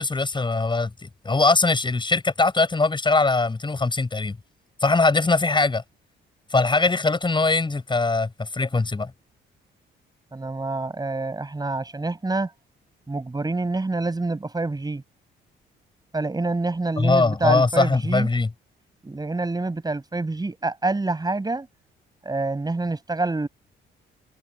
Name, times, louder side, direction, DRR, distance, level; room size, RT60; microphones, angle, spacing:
voice 1, 0.0-4.4 4.8-5.8 6.5-9.1 17.0-18.5, left 3 dB, 25° left, 6.9 m, -21 dB
voice 2, 10.3-12.5 13.1-15.0 16.1-18.3 19.0-21.7 22.2-23.5, right 3 dB, 20° right, 6.2 m, -27 dB
cardioid pair, 90°, 20 cm